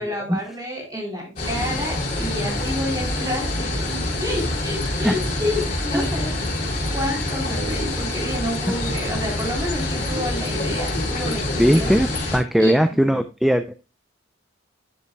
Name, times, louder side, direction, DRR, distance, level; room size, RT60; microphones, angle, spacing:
voice 1, 0.0-3.7 4.2-6.3 6.9-13.2, left 1 dB, 20° right, -2 dB, 3.8 m, -29 dB
sound 1, 1.4-12.4, left 1 dB, 40° left, 4.1 m, -26 dB
voice 2, 11.6-13.7, equal, ahead, 9 dB, 0.4 m, -19 dB
10.0 x 6.8 x 2.2 m, 0.27 s
head